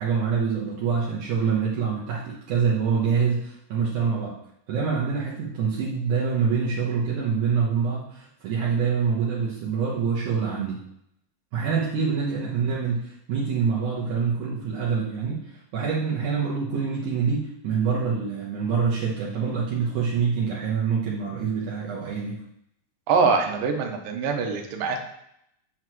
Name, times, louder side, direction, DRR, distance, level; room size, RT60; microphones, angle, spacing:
voice 1, 0.0-4.4 4.7-10.8 11.5-22.4, right 6 dB, 65° right, -5 dB, 2.4 m, -25 dB
voice 2, 23.1-25.0, right 4 dB, 85° right, 3 dB, 2.8 m, -23 dB
8.1 x 7.8 x 3.1 m, 0.74 s
omnidirectional pair, 3.9 m